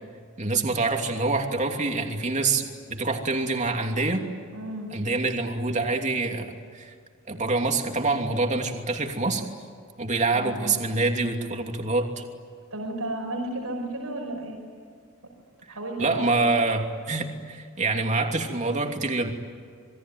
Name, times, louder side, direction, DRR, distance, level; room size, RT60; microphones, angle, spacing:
voice 1, 0.4-4.2 4.9-6.9 7.3-9.4 10.0-12.2 15.7-19.3, right 3 dB, 35° right, 3 dB, 2.9 m, -26 dB
voice 2, 4.5-4.9 10.3-10.8 12.7-14.6 15.7-16.4, right 1 dB, 85° right, 0 dB, 5.4 m, -33 dB
27.5 x 22.0 x 9.4 m, 2.1 s
head